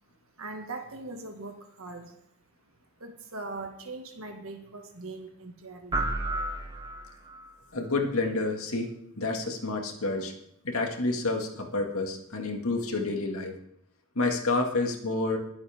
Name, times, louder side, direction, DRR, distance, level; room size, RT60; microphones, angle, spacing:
voice 1, 0.4-2.2 3.0-6.1, right 3 dB, 70° right, 3 dB, 1.9 m, -41 dB
sound 1, 5.9-7.5, right 2 dB, 20° right, 1.2 m, -31 dB
voice 2, 7.7-10.3 10.6-13.6 14.2-15.4, left 3 dB, 75° left, 2 dB, 2.2 m, -29 dB
21.0 x 8.1 x 3.7 m, 0.72 s
head